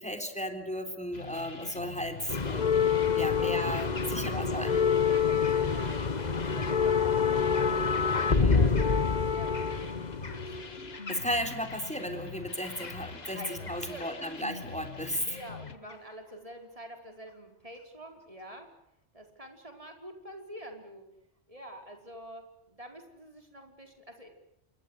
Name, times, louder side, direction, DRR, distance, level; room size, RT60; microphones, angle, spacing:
voice 1, 0.0-2.7 3.1-4.7 8.3-8.6 11.1-15.4, equal, 5° left, 7 dB, 3.6 m, -35 dB
sound 1, 1.1-15.8, left 5 dB, 60° left, 1.8 m, -44 dB
sound 2, 2.3-11.7 12.6-13.8 14.0-14.2 15.1-15.2, left 6 dB, 40° left, 1.3 m, -27 dB
voice 2, 4.1-7.8 8.0-8.9 9.1-10.9 13.3-14.2 15.2-18.7 19.1-21.0 21.5-24.3, right 1 dB, 30° right, 4 dB, 5.0 m, -47 dB
28.0 x 23.0 x 8.3 m, 0.79 s
omnidirectional pair, 1.2 m